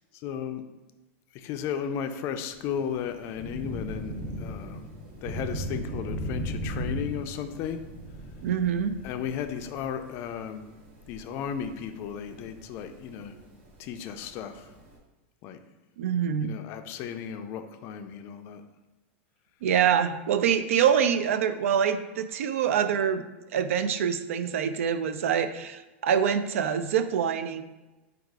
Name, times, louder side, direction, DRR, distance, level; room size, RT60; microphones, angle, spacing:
voice 1, 0.2-0.6 1.3-4.9 5.2-7.8 9.0-10.7 11.1-13.4 13.8-14.7 15.4-15.6 16.4-18.6, left 8 dB, 35° left, 8 dB, 0.3 m, -34 dB
Thunder / Rain, 2.5-15.0, equal, 50° right, 1.0 m, -38 dB
voice 2, 8.4-9.0 16.0-16.5 19.6-23.2 23.5-27.6, right 8 dB, 85° right, 10 dB, 0.4 m, -25 dB
4.9 x 2.3 x 4.6 m, 1.1 s
supercardioid pair, 150°, 7 cm